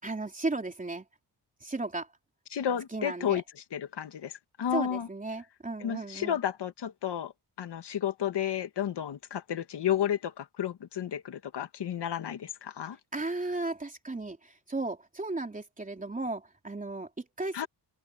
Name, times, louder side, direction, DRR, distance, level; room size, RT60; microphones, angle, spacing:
voice 1, 0.0-1.1 1.6-2.1 2.9-3.4 4.7-6.4 13.1-17.7, right 2 dB, 20° right, 3.7 m, -35 dB
voice 2, 2.5-3.4 3.7-5.1 5.8-7.3 7.6-13.0 17.5-17.7, left 10 dB, 75° left, 1.8 m, -32 dB
open air
wide cardioid pair, 150°, 41 cm